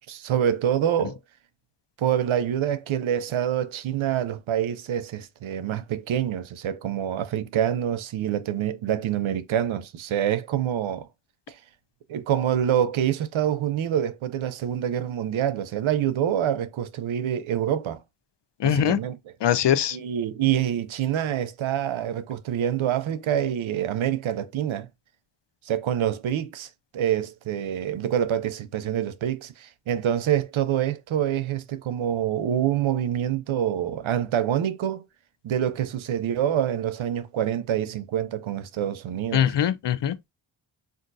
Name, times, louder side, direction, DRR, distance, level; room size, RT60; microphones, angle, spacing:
voice 1, 0.1-1.2 2.0-11.1 11.5-11.6 12.1-18.0 18.6-19.2 19.9-24.9 25.7-35.1 35.4-39.5, right 10 dB, 70° right, 0.6 m, -26 dB
voice 2, 18.6-19.0 19.4-20.0 39.3-40.3, left 10 dB, 60° left, 0.6 m, -22 dB
3.6 x 2.5 x 2.6 m
cardioid pair, 45°, 49 cm